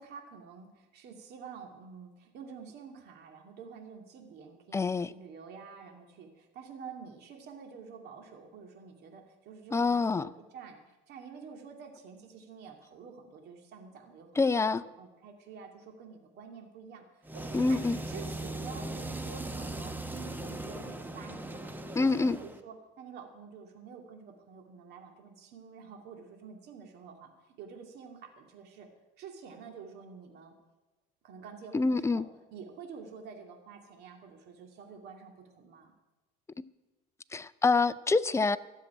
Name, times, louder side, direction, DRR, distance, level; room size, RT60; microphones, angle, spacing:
voice 1, 0.0-14.7 15.0-17.4 17.7-17.8 18.0-27.3 27.6-28.9 29.2-30.5 31.2-35.9, right 6 dB, 60° right, 3 dB, 2.5 m, -48 dB
voice 2, 4.7-5.1 9.7-10.3 14.4-14.8 17.5-18.0 21.9-22.4 31.7-32.3 37.3-38.6, left 3 dB, 15° left, 15 dB, 0.5 m, -26 dB
sound 1, 17.2-22.6, right 2 dB, 10° right, 1.1 m, -39 dB
13.5 x 7.5 x 9.8 m, 1.1 s
supercardioid pair, 100°, 19 cm